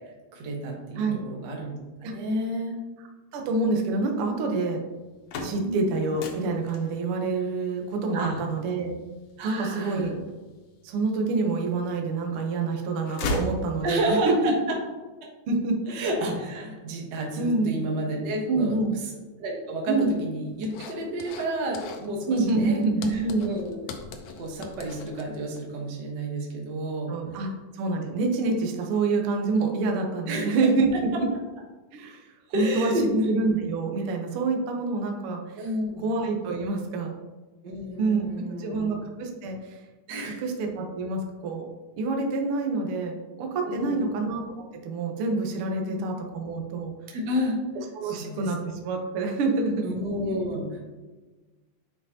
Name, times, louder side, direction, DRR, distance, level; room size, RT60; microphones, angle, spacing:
voice 1, 0.3-2.8 5.6-5.8 8.1-8.4 9.4-10.1 13.8-14.8 15.9-19.1 19.4-22.8 23.1-23.9 24.3-27.4 30.3-30.6 30.9-31.2 32.5-33.3 35.6-36.1 37.6-39.0 40.1-40.4 43.6-44.1 45.8-46.0 46.2-46.3 47.1-47.6 48.0-48.5 49.8-50.9, equal, 65° right, -1 dB, 1.0 m, -31 dB
voice 2, 3.3-4.8 5.4-9.0 9.4-10.2 10.8-14.5 15.5-15.8 17.4-17.7 18.5-18.9 19.9-20.1 22.3-23.5 27.1-27.5 27.7-31.3 31.9-32.3 32.5-32.9 33.3-35.4 36.0-37.1 38.0-39.8 40.4-41.7 42.0-46.9 47.9-49.8, right 3 dB, 85° right, 2 dB, 1.2 m, -27 dB
sound 1, 5.0-11.0 11.5-12.3 12.6-14.2, left 2 dB, 70° left, 1.7 m, -36 dB
sound 2, 20.6-21.5 21.7-22.1 22.4-25.6, left 5 dB, 85° left, 1.4 m, -42 dB
9.3 x 4.7 x 2.8 m, 1.2 s
omnidirectional pair, 3.8 m